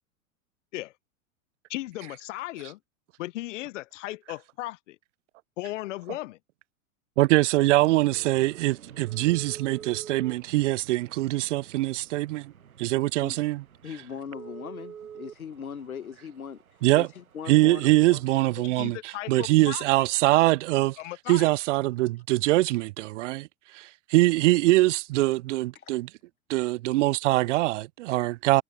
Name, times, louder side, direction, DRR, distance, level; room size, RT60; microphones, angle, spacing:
voice 1, 1.7-2.8 3.2-5.0 5.6-6.4 18.6-19.8 21.0-21.5, left 17 dB, 60° left, 1.1 m, -36 dB
voice 2, 7.2-12.5 12.8-13.6 16.8-17.1 17.5-21.0 21.3-23.5 23.7-26.1 26.5-28.6, right 18 dB, 60° right, 0.5 m, -23 dB
sound 1, 7.8-18.6, right 8 dB, 85° right, 1.1 m, -48 dB
voice 3, 13.8-16.6 17.0-18.2 25.7-25.9, left 7 dB, 85° left, 1.7 m, -39 dB
hypercardioid pair, 95°, 41 cm